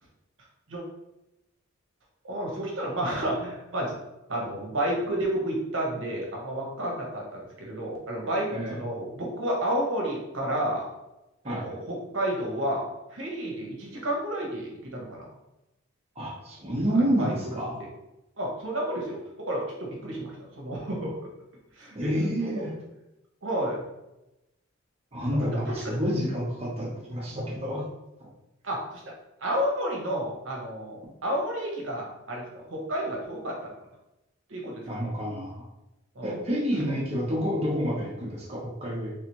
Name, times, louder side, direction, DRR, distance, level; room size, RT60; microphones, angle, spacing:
voice 1, 2.2-3.9 4.3-10.9 11.4-15.3 17.2-17.5 18.4-21.1 21.8-22.1 22.4-22.6 23.4-23.8 25.3-26.0 28.6-28.8 29.4-32.4 32.7-33.5 34.5-35.0 36.1-36.4, right 1 dB, 65° right, -1 dB, 1.1 m, -31 dB
voice 2, 16.2-17.8 21.9-22.7 25.1-27.8 34.9-35.7 36.2-39.1, equal, 30° right, -4 dB, 1.0 m, -29 dB
3.5 x 3.3 x 3.0 m, 0.94 s
head